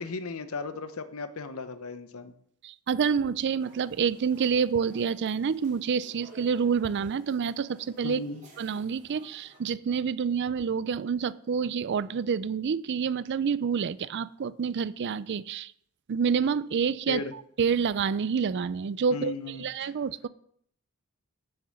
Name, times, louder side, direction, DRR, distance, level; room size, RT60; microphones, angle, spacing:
voice 1, 0.0-2.3 8.0-8.5 17.1-17.3 19.1-19.9, left 3 dB, 70° left, 11 dB, 0.8 m, -36 dB
voice 2, 2.6-8.2 8.6-15.7 16.1-17.2 17.6-20.3, right 6 dB, 50° right, 18 dB, 0.4 m, -28 dB
sound 1, 3.6-9.6, right 2 dB, 35° right, 2.6 m, -55 dB
6.8 x 6.8 x 7.6 m, 0.67 s
head